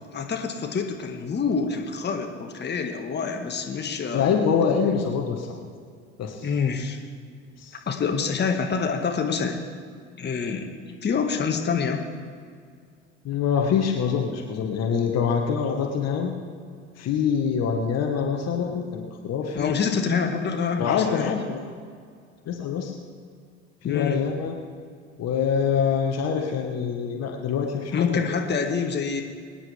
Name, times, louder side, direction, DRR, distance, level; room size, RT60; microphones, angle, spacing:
voice 1, 0.1-4.3 6.4-7.0 7.9-9.6 10.2-12.0 19.5-21.3 23.8-24.3 27.9-29.2, left 5 dB, 30° left, 3 dB, 1.7 m, -26 dB
voice 2, 4.1-5.5 6.2-6.5 7.6-7.7 13.2-16.3 17.0-19.7 20.8-21.7 22.4-22.9 23.8-24.6 25.2-28.3, left 6 dB, 45° left, 2 dB, 1.5 m, -25 dB
24.0 x 9.9 x 3.5 m, 2.1 s
hypercardioid pair, 70°, 35 cm